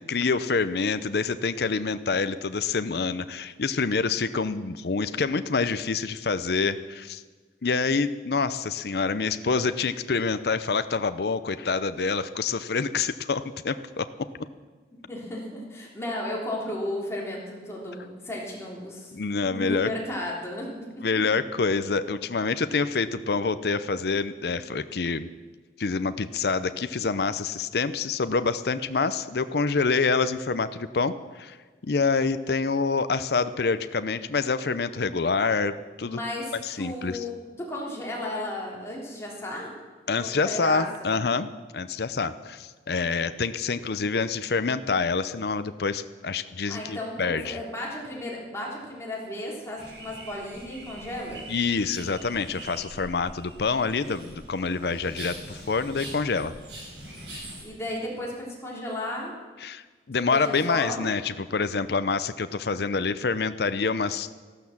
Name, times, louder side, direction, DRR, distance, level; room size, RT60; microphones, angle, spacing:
voice 1, 0.1-7.2 7.6-14.1 19.1-19.9 21.0-25.3 25.8-31.6 31.8-36.2 36.6-37.2 40.1-41.5 41.7-47.6 51.5-56.5 59.6-64.3, left 4 dB, 60° left, 12 dB, 0.6 m, -27 dB
voice 2, 15.1-19.1 19.4-21.1 36.0-39.7 40.2-41.1 46.7-51.4 57.6-59.3 60.3-61.1, left 1 dB, 15° left, -3 dB, 3.4 m, -34 dB
sound 1, 49.8-57.6, right 1 dB, 75° right, 6.6 m, -43 dB
14.0 x 12.5 x 7.2 m, 1.4 s
head